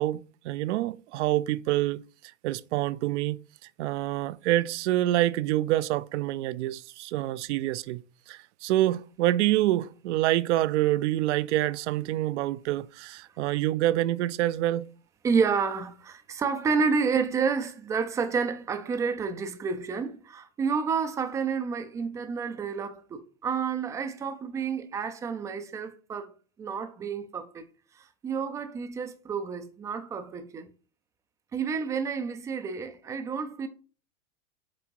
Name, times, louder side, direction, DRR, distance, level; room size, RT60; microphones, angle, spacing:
voice 1, 0.0-2.0 2.4-3.4 3.8-8.0 8.3-14.9, right 15 dB, 70° right, 0.6 m, -26 dB
voice 2, 15.2-26.3 26.6-27.7 27.9-30.7 31.5-33.7, right 5 dB, 10° right, 0.3 m, -30 dB
7.8 x 3.5 x 4.5 m
supercardioid pair, 145°, 37 cm